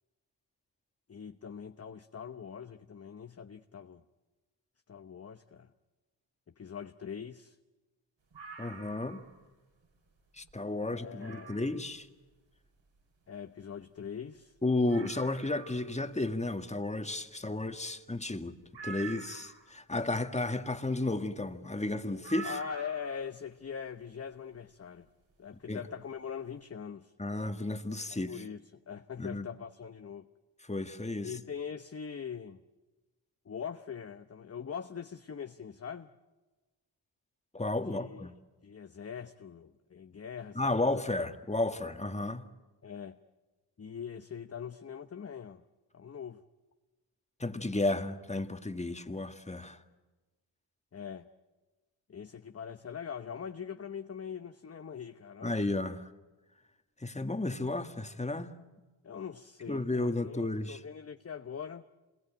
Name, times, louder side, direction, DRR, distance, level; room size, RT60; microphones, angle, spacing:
voice 1, 1.1-4.0 4.9-5.7 6.6-7.6 10.8-11.6 13.3-14.5 22.4-25.1 25.4-27.1 28.1-30.3 31.2-32.6 33.4-36.1 37.9-38.3 38.6-41.3 42.8-43.2 43.8-45.6 45.9-46.4 50.9-51.3 52.1-55.6 59.0-61.9, left 7 dB, 30° left, 0.9 m, -42 dB
sound 1, 8.3-9.4 9.8-9.9 10.4-10.5 11.2-11.8 13.6-13.7 13.8-13.9 14.4-14.5 14.9-15.9 18.7-19.7 22.2-23.2 24.5-24.6, right 5 dB, 65° right, 6.7 m, -46 dB
voice 2, 8.6-9.2 10.4-12.1 14.6-18.5 18.8-22.6 25.7-25.8 27.2-28.3 29.2-29.5 30.7-31.3 37.5-38.3 40.6-42.5 47.4-49.8 55.4-56.1 57.0-58.5 59.7-60.8, left 2 dB, 15° left, 1.8 m, -33 dB
27.0 x 21.5 x 9.0 m
cardioid pair, 55°, 47 cm